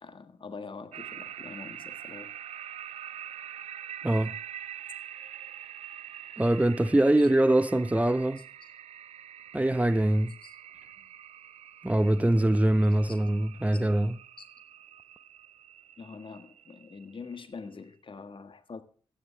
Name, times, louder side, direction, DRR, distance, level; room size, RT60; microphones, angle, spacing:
voice 1, 0.0-2.3 7.2-7.3 8.4-8.7 10.4-10.6 13.1-13.2 13.7-13.8 14.4-14.5 16.0-18.8, left 4 dB, 50° left, 1.6 m, -44 dB
sound 1, 0.9-17.7, right 10 dB, 75° right, 0.6 m, -45 dB
voice 2, 4.0-4.3 6.4-8.4 9.5-10.3 11.8-14.2, right 1 dB, 10° right, 0.6 m, -23 dB
14.5 x 10.0 x 3.4 m
supercardioid pair, 40°, 11 cm